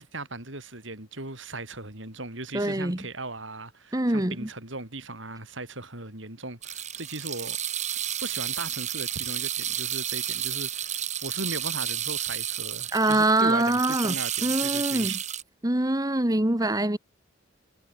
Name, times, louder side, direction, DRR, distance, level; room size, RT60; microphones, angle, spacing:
voice 1, 0.0-7.6 8.2-15.2, right 2 dB, 65° right, 6.8 m, -38 dB
voice 2, 2.5-3.0 3.9-4.5 12.9-14.1 14.4-15.1 15.6-17.0, right 2 dB, 20° right, 1.4 m, -24 dB
sound 1, 6.6-15.4, right 10 dB, 35° right, 2.7 m, -31 dB
head